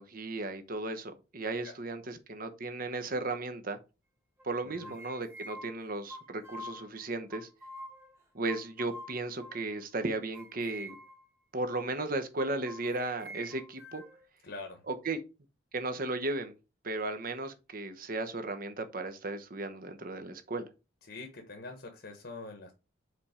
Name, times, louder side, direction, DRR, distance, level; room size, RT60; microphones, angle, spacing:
voice 1, 0.0-3.8 4.4-7.5 8.3-11.0 11.5-14.0 14.9-15.2 15.7-16.5 16.8-20.7, right 2 dB, 45° right, 0.9 m, -35 dB
sound 1, 4.4-6.9 7.3-8.2 8.5-9.8 10.3-11.2 11.7-11.9 12.4-14.3, equal, 15° right, 1.4 m, -47 dB
voice 2, 14.4-14.8 21.1-22.7, left 3 dB, 55° left, 1.1 m, -44 dB
5.1 x 4.3 x 5.0 m
head